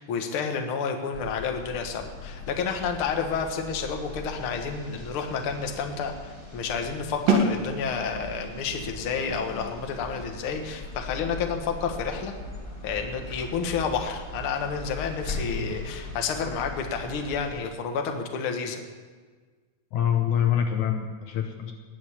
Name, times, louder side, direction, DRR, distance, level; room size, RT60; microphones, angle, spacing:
voice 1, 0.0-12.3 12.8-18.8, left 6 dB, 50° left, 4 dB, 1.8 m, -30 dB
sound 1, 1.1-17.6, left 2 dB, 10° left, 1.5 m, -40 dB
sound 2, 7.3-13.0, right 2 dB, 85° right, 3.6 m, -31 dB
voice 2, 19.9-21.7, left 9 dB, 70° left, 4 dB, 2.2 m, -25 dB
20.0 x 7.2 x 8.8 m, 1.5 s
omnidirectional pair, 3.8 m